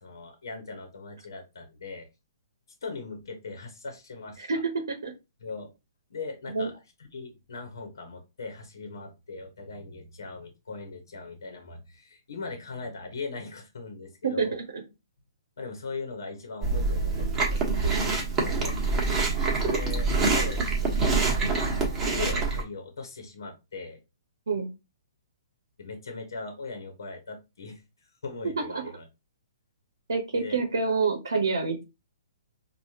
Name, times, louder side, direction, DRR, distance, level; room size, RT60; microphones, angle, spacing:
voice 1, 0.0-2.1 2.8-4.6 5.4-5.7 6.1-6.7 7.1-14.5 15.6-18.8 19.4-21.6 22.1-24.0 25.8-27.8 28.2-29.0 30.3-30.6, left 4 dB, 70° left, 3 dB, 1.1 m, -40 dB
voice 2, 4.4-5.1 6.5-6.7 14.2-14.8 17.8-18.0 24.5-24.7 28.4-28.8 30.1-31.8, right 4 dB, 75° right, 4 dB, 0.8 m, -28 dB
Chewing mastication, 16.6-22.6, right 3 dB, 20° right, 1.2 m, -25 dB
4.7 x 2.5 x 2.8 m, 0.26 s
hypercardioid pair, 130°, 2 cm